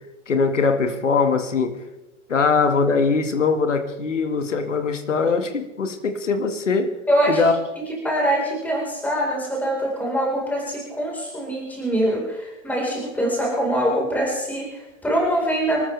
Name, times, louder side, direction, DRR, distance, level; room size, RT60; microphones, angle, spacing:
voice 1, 0.3-1.8 2.3-6.9 7.3-7.5, left 4 dB, 75° left, 7 dB, 1.9 m, -21 dB
voice 2, 7.1-7.4 7.8-15.8, right 1 dB, 5° left, -2 dB, 4.3 m, -23 dB
26.0 x 13.5 x 3.4 m, 1.0 s
figure-of-eight pair, 100°, 37 cm